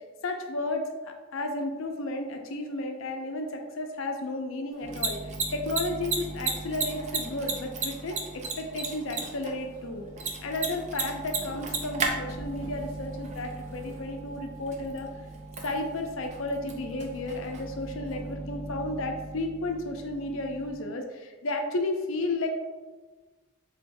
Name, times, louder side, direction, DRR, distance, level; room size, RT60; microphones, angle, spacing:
voice 1, 0.2-10.0 10.4-15.1 15.6-22.5, left 2 dB, 60° left, 4 dB, 0.5 m, -33 dB
Mechanisms, 4.7-18.3, right 4 dB, 30° right, 0.4 m, -36 dB
sound 1, 4.8-20.7, right 1 dB, 10° right, 0.8 m, -42 dB
3.8 x 3.3 x 2.6 m, 1.3 s
head